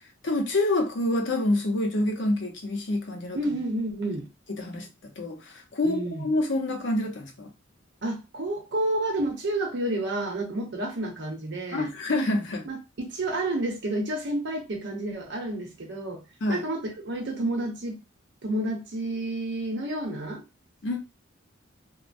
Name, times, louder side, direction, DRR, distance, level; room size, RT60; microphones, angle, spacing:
voice 1, 0.2-3.4 4.6-7.5 11.7-12.7 16.4-16.6 20.8-21.0, left 1 dB, 65° left, 0.7 m, -27 dB
voice 2, 3.3-4.3 5.8-6.2 8.0-11.9 12.7-16.2 16.5-18.0 18.4-20.4, right 1 dB, 65° right, 0.8 m, -30 dB
3.0 x 2.0 x 2.5 m
head